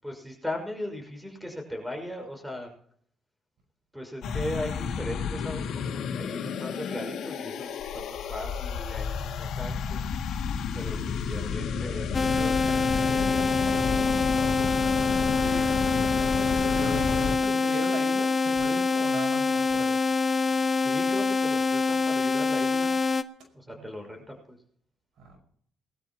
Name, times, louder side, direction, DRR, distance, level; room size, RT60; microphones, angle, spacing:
voice 1, 0.0-2.7 3.9-10.0 10.7-12.3 15.4-15.7 20.5-22.9 23.5-24.6, left 1 dB, 5° right, 2 dB, 5.6 m, -38 dB
sound 1, 4.2-17.4, left 6 dB, 80° left, 2.3 m, -31 dB
sound 2, 12.1-23.2, left 4 dB, 30° left, 0.9 m, -25 dB
voice 2, 12.2-14.8 16.7-20.0 23.7-23.8 25.2-25.4, right 3 dB, 80° right, 3 dB, 5.5 m, -40 dB
21.5 x 13.0 x 3.0 m, 0.62 s
cardioid pair, 90°, 0 cm